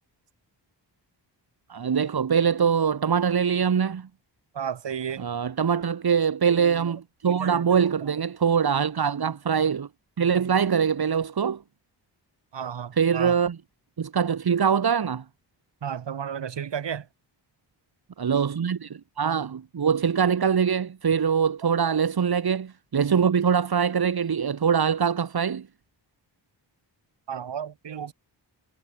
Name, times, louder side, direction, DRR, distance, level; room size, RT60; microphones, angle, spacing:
voice 1, 1.7-4.1 5.2-9.9 10.2-11.6 12.9-13.6 14.0-15.2 18.2-25.7, right 7 dB, 55° right, 5.7 m, -23 dB
voice 2, 4.6-5.3 6.5-6.9 7.2-7.6 12.5-13.3 15.8-17.0 27.3-28.1, right 8 dB, 75° right, 5.9 m, -33 dB
wide cardioid pair, 150°, 43 cm